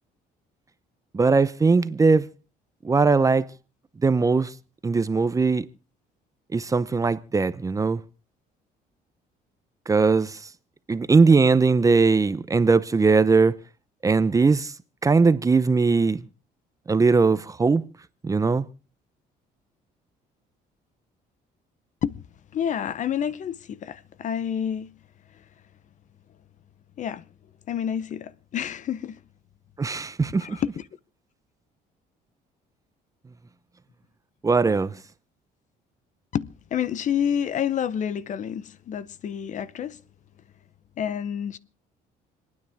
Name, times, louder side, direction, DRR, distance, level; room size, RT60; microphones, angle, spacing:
voice 1, 1.1-2.3 2.8-3.5 4.0-4.5 4.8-5.7 6.5-8.0 9.9-10.4 10.9-13.5 14.0-14.7 15.0-16.2 16.9-17.8 18.2-18.7 29.8-30.6 34.4-34.9, right 4 dB, 20° right, 0.6 m, -20 dB
voice 2, 22.5-24.9 27.0-27.2 27.7-29.2 30.3-30.7 36.3-40.0 41.0-41.6, left 9 dB, 50° left, 0.7 m, -28 dB
28.5 x 9.6 x 3.5 m
cardioid pair, 110°, 17 cm